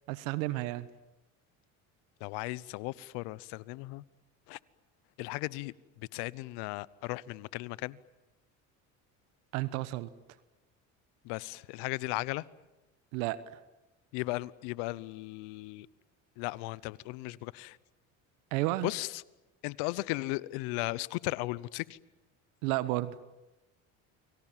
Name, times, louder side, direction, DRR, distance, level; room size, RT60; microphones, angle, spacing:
voice 1, 0.1-0.9 9.5-10.1 13.1-13.4 18.5-18.9 22.6-23.2, right 18 dB, 80° right, 15 dB, 1.2 m, -31 dB
voice 2, 2.2-4.0 4.5-4.6 5.2-5.7 6.1-8.0 11.2-12.4 14.1-15.9 16.4-17.8 18.8-19.1 19.6-21.8, left 21 dB, 75° left, 21 dB, 1.0 m, -36 dB
30.0 x 24.0 x 7.5 m, 1.0 s
supercardioid pair, 80°, 40 cm